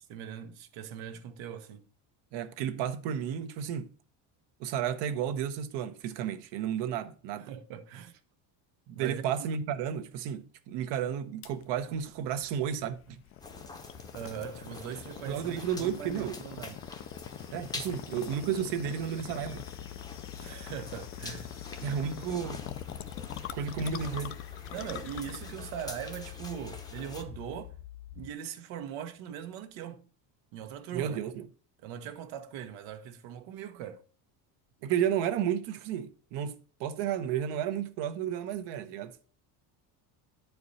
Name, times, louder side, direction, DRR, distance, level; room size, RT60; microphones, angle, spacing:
voice 1, 0.1-1.8 7.5-8.2 8.9-9.2 14.1-16.8 20.4-21.6 24.7-27.7 28.1-30.1 30.5-31.2 31.8-34.0, right 9 dB, 80° right, 1.3 m, -41 dB
voice 2, 2.3-3.9 4.6-7.5 8.9-13.2 15.2-16.4 17.5-19.6 21.8-22.7 23.5-24.4 30.9-31.5 34.8-39.2, right 9 dB, 65° right, 1.0 m, -32 dB
sound 1, 11.4-27.7, left 11 dB, 30° left, 0.4 m, -45 dB
sound 2, 13.4-27.2, left 3 dB, 10° left, 0.7 m, -46 dB
sound 3, 19.4-28.3, left 13 dB, 70° left, 0.6 m, -46 dB
9.8 x 4.7 x 4.0 m
cardioid pair, 160°, 46 cm